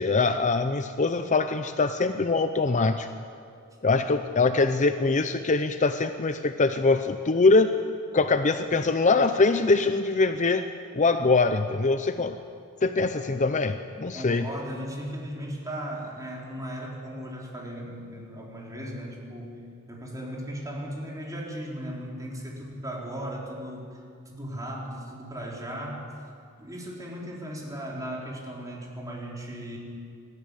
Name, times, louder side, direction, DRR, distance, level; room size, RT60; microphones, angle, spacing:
voice 1, 0.0-3.1 3.8-7.7 8.1-10.6 10.9-12.4 12.8-14.5, left 3 dB, 35° left, 9 dB, 0.6 m, -23 dB
voice 2, 14.1-19.6 19.9-24.0 24.3-26.1 26.6-29.8, equal, 15° right, -3 dB, 3.9 m, -37 dB
20.5 x 14.0 x 9.7 m, 2.3 s
head